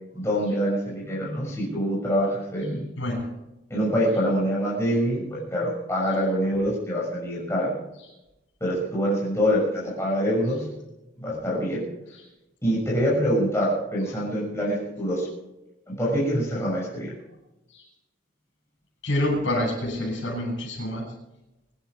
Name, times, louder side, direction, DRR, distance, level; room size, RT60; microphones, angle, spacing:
voice 1, 0.1-2.8 3.7-7.7 8.6-10.6 11.2-11.8 12.6-15.3 15.9-17.1, equal, 15° left, -6 dB, 6.4 m, -25 dB
voice 2, 3.0-3.3 12.1-12.2 17.7-17.9 19.0-21.1, left 1 dB, 80° left, -1 dB, 7.9 m, -27 dB
25.0 x 11.5 x 4.8 m, 0.94 s
head